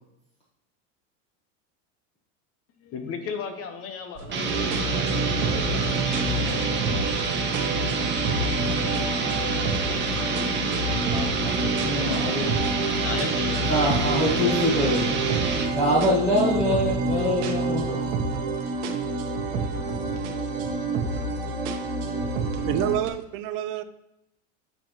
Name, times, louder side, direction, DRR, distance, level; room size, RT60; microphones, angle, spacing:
voice 1, 2.8-7.4 7.9-12.5 13.0-14.4, left 6 dB, 35° left, 7 dB, 1.0 m, -39 dB
sound 1, 4.2-4.4 4.7-7.2 7.5-9.0 9.3-10.0 10.4-12.9 13.2-15.7 16.0-18.6 18.8-20.3 20.6-21.3 21.7-23.1, right 3 dB, 70° right, 1.2 m, -33 dB
sound 2, 4.3-15.8, right 4 dB, 30° right, 1.2 m, -28 dB
sound 3, 4.4-23.0, right 2 dB, 85° right, 1.6 m, -29 dB
voice 2, 11.8-12.4 13.7-15.4 15.7-18.1, left 1 dB, 15° left, -6 dB, 1.3 m, -24 dB
voice 3, 22.7-23.8, right 11 dB, 50° right, 11 dB, 0.6 m, -27 dB
9.1 x 4.6 x 3.0 m, 0.87 s
supercardioid pair, 120°, 38 cm